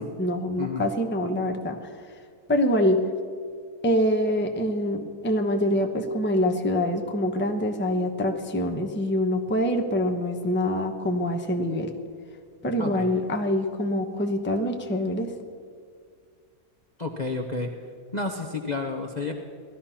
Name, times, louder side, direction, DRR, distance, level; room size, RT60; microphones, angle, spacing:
voice 1, 0.2-1.8 2.5-3.0 3.8-11.9 12.6-15.3, left 1 dB, 10° left, 5 dB, 0.8 m, -25 dB
voice 2, 17.0-17.7 18.1-19.3, left 3 dB, 35° left, 2 dB, 0.9 m, -30 dB
17.0 x 13.0 x 5.8 m, 2.1 s
omnidirectional pair, 1.7 m